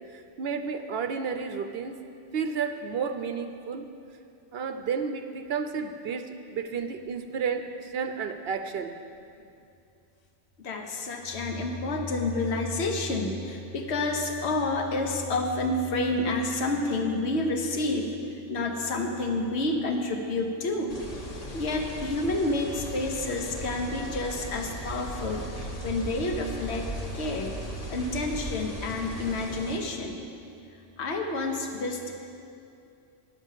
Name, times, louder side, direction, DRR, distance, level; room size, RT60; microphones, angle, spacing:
voice 1, 0.1-2.0 2.3-3.9 4.5-9.0, right 6 dB, 65° right, 7 dB, 0.7 m, -32 dB
voice 2, 10.6-18.1 18.5-21.0 21.5-27.5 27.9-30.2 31.0-32.1, left 2 dB, 65° left, 3 dB, 1.3 m, -29 dB
sound 1, 20.9-29.8, equal, 35° left, 1.1 m, -37 dB
10.5 x 7.0 x 7.4 m, 2.6 s
omnidirectional pair, 1.2 m